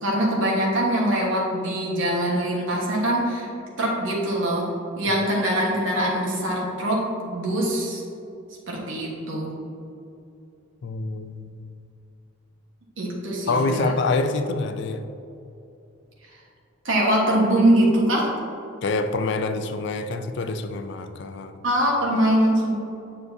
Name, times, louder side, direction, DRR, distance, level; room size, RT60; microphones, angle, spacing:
voice 1, 0.0-3.5 3.8-4.7 4.9-8.0 8.7-9.6 13.0-13.9 16.8-18.3 21.6-22.7, right 1 dB, 65° right, -3 dB, 1.3 m, -23 dB
voice 2, 10.8-11.7 13.5-15.0 18.8-21.6, left 3 dB, 55° left, 8 dB, 0.4 m, -26 dB
7.1 x 6.4 x 2.7 m, 2.7 s
head